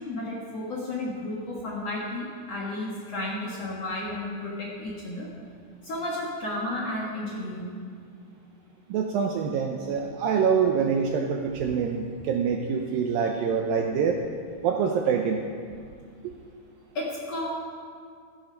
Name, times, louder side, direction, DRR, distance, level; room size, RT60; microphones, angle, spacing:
voice 1, 0.0-5.3 5.8-7.7 16.9-17.5, left 1 dB, 55° left, -4 dB, 1.9 m, -32 dB
voice 2, 8.9-14.2 14.6-15.4, right 6 dB, 75° right, 2 dB, 2.1 m, -25 dB
14.5 x 12.0 x 5.2 m, 2.2 s
omnidirectional pair, 4.8 m